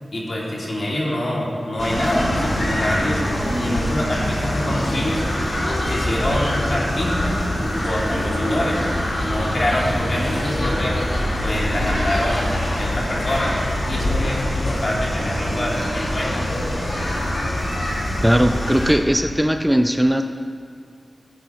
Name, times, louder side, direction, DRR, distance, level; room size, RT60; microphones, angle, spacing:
voice 1, 0.1-3.2 3.5-5.2 5.9-7.4 7.8-8.8 9.2-11.0 11.4-13.5 13.9-16.5, left 1 dB, 60° left, -4 dB, 2.5 m, -25 dB
sound 1, 1.8-18.9, left 1 dB, 80° left, 2.4 m, -24 dB
voice 2, 18.2-20.2, equal, 10° right, 6 dB, 0.5 m, -18 dB
15.5 x 7.8 x 3.0 m, 2.3 s
cardioid pair, 45°, 0 cm